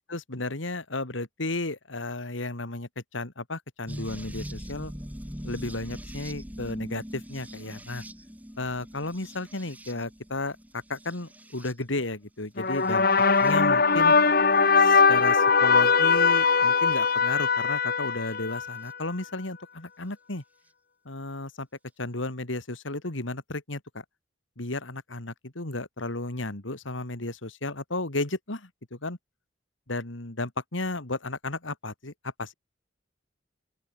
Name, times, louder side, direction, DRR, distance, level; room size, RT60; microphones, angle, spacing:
voice 1, 0.0-4.9 5.4-8.0 8.6-13.1 13.4-14.1 14.8-20.4 21.0-21.7 22.0-24.0 24.6-29.2 29.9-32.1 32.4-32.5, left 2 dB, 90° left, 2.8 m, -33 dB
sound 1, 3.9-12.0 12.7-13.5 14.7-15.3 17.0-17.1 18.9-19.0, equal, 10° right, 3.6 m, -42 dB
sound 2, 12.6-18.9, left 5 dB, 50° left, 2.2 m, -21 dB
open air
head